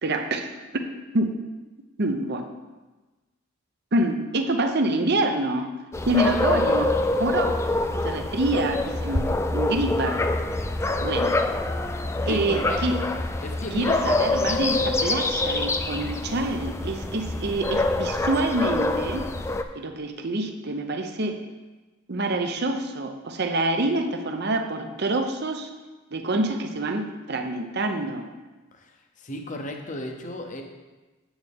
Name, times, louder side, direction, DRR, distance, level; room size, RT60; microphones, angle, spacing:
voice 1, 0.0-0.5 1.1-1.3 2.0-2.5 3.9-5.7 6.1-6.9 7.2-7.6 8.0-10.2 11.0-11.3 12.3-13.0 13.7-19.2 19.7-21.4 22.1-25.7 26.1-28.3, right 2 dB, 55° right, 6 dB, 0.8 m, -26 dB
sound 1, 5.9-19.6, left 2 dB, 15° left, 0.4 m, -25 dB
voice 2, 12.3-13.1 13.4-14.9 28.7-30.6, left 1 dB, 40° left, 3 dB, 0.9 m, -35 dB
8.8 x 7.8 x 3.6 m, 1.2 s
head